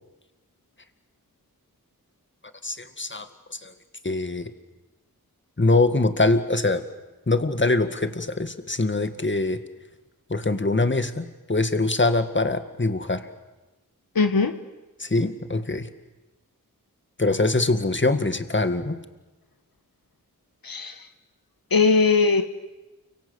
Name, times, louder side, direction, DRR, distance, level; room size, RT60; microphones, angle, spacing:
voice 1, 2.6-3.3 3.6-3.7 4.0-4.5 5.6-6.8 7.3-9.6 10.3-13.3 15.0-15.9 17.2-19.0, left 2 dB, 35° left, 10 dB, 2.0 m, -23 dB
voice 2, 14.1-14.5 20.6-21.0 21.7-22.4, left 4 dB, 80° left, 9 dB, 1.4 m, -19 dB
29.5 x 24.5 x 8.2 m, 1.1 s
wide cardioid pair, 60°, 35 cm